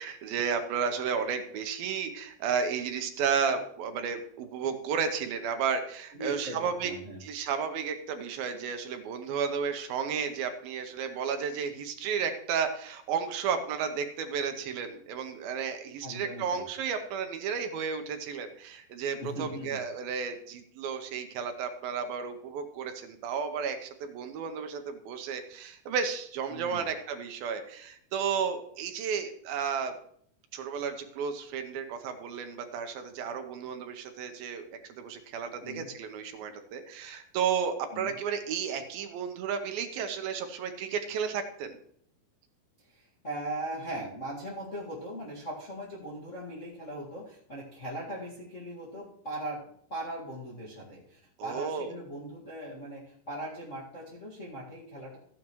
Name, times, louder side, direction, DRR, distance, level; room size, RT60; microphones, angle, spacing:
voice 1, 0.0-6.9 7.2-29.9 30.5-34.6 34.9-41.8 51.4-52.0, right 6 dB, 75° right, 7 dB, 2.6 m, -33 dB
voice 2, 6.1-7.2 16.0-16.6 19.2-19.8 26.5-26.8 35.6-35.9 37.9-38.1 42.8-55.2, right 1 dB, 35° left, -6 dB, 1.2 m, -39 dB
14.5 x 9.1 x 3.1 m, 0.65 s
omnidirectional pair, 4.5 m